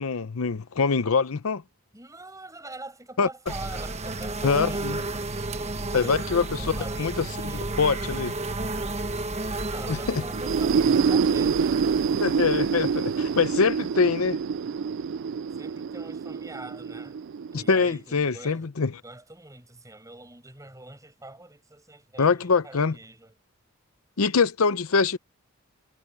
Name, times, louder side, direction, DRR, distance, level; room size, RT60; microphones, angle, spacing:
voice 1, 0.0-1.6 3.2-3.3 4.4-5.0 5.9-7.3 7.8-8.4 9.9-10.2 12.2-14.4 17.5-19.0 22.2-23.0 24.2-25.2, left 5 dB, 70° left, 0.7 m, -24 dB
voice 2, 1.9-6.2 6.5-7.7 9.7-11.8 15.6-17.2 17.5-18.7 19.0-23.3, right 2 dB, 15° right, 7.1 m, -44 dB
sound 1, 3.5-14.1, right 2 dB, 30° right, 1.2 m, -33 dB
sound 2, 10.3-18.0, right 6 dB, 55° right, 0.3 m, -26 dB
head